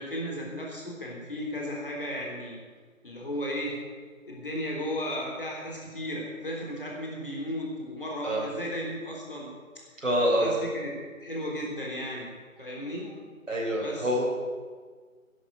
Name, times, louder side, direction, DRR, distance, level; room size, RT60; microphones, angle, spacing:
voice 1, 0.0-2.6 3.0-3.8 4.3-9.5 10.2-10.9 11.2-12.3 12.6-13.2 13.8-14.1, equal, 40° left, -2 dB, 3.6 m, -35 dB
voice 2, 10.0-10.5 13.5-14.3, equal, 60° right, -3 dB, 4.4 m, -26 dB
13.0 x 10.5 x 6.5 m, 1.5 s
figure-of-eight pair, 170°, 41 cm